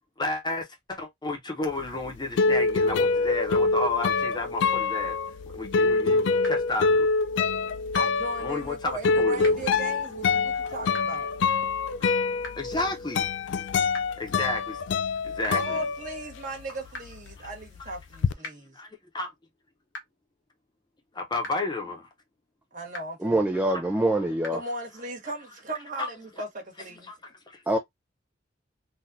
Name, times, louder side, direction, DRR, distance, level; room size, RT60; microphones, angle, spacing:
voice 1, 0.2-5.2 5.5-7.1 8.4-9.6 10.6-10.7 12.0-12.1 12.6-13.3 14.2-14.8 15.2-15.8 17.4-17.5 18.8-18.9 19.1-19.3 21.1-22.1 23.7-23.8 26.0-26.1 27.1-27.6, left 2 dB, 25° left, 0.9 m, -31 dB
sound 1, 1.8-16.6 16.9-18.3, left 4 dB, 65° left, 0.3 m, -26 dB
sound 2, 6.4-6.5 7.9-8.0 9.4-9.5 10.9-11.0 12.4-12.5 13.9-14.0 15.4-15.5 16.9-17.0 18.4-18.5 19.9-20.0 21.4-21.5 22.9-23.0 24.4-24.5, left 2 dB, 90° left, 1.2 m, -37 dB
voice 2, 7.9-11.3 15.5-18.8 22.7-23.4 24.5-27.1, right 2 dB, 45° right, 1.6 m, -37 dB
voice 3, 23.2-24.6 27.7-27.8, right 1 dB, 10° right, 0.4 m, -24 dB
3.8 x 2.5 x 2.7 m
head